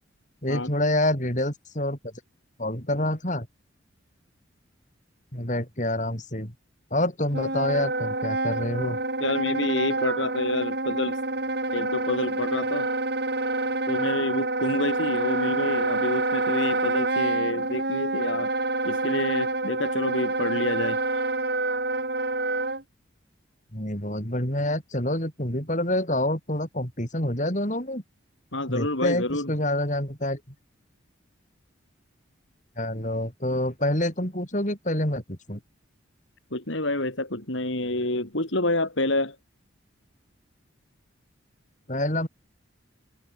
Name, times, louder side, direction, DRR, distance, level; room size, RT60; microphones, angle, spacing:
voice 1, 0.4-2.0 2.6-3.5 5.3-6.5 6.9-9.0 23.7-28.0 28.7-30.4 32.8-35.6 41.9-42.3, left 1 dB, 35° left, 7.3 m, -27 dB
Wind instrument woodwind instrument, 7.3-22.8, right 2 dB, 50° right, 4.1 m, -27 dB
voice 2, 9.2-11.2 11.7-12.9 13.9-18.5 18.8-21.0 28.5-29.5 36.5-39.4, left 2 dB, 65° left, 4.2 m, -28 dB
head